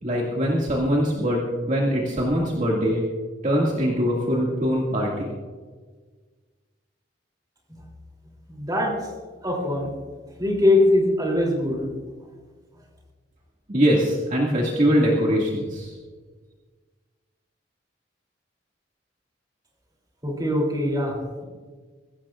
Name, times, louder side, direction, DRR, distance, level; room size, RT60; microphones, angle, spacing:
voice 1, 0.0-3.0 3.4-5.3 13.7-15.9, equal, 45° right, -3 dB, 2.2 m, -22 dB
voice 2, 8.5-9.1 9.4-9.9 10.4-11.9 20.2-21.4, left 1 dB, 20° right, -2 dB, 3.2 m, -22 dB
22.0 x 16.5 x 2.5 m, 1.4 s
head